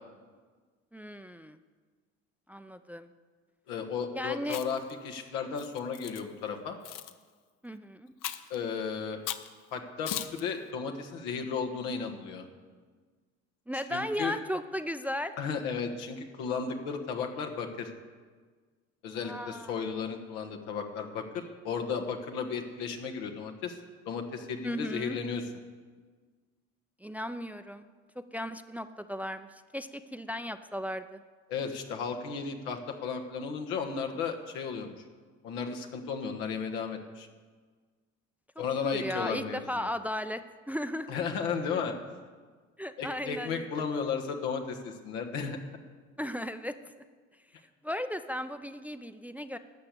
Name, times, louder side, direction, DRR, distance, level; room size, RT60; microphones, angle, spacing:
voice 1, 0.9-1.6 2.5-3.1 4.1-4.6 7.6-8.1 13.7-15.4 19.2-19.8 24.6-25.2 27.0-27.9 28.2-31.2 38.9-41.2 42.8-43.7 46.2-47.0 47.5-49.6, equal, 5° right, 10 dB, 0.5 m, -36 dB
voice 2, 3.7-6.8 8.5-9.2 9.7-12.4 13.9-14.4 15.4-17.9 19.0-23.8 24.0-25.4 31.5-34.9 35.4-37.3 38.6-39.9 41.1-42.0 43.0-45.6, left 6 dB, 80° left, 4 dB, 1.5 m, -34 dB
Chewing mastication, 4.4-4.9 5.6-6.2 6.8-7.1 8.2-8.6 9.3-9.5 10.1-10.4, left 11 dB, 60° left, 0.9 m, -37 dB
12.5 x 6.8 x 8.4 m, 1.5 s
hypercardioid pair, 70°, 36 cm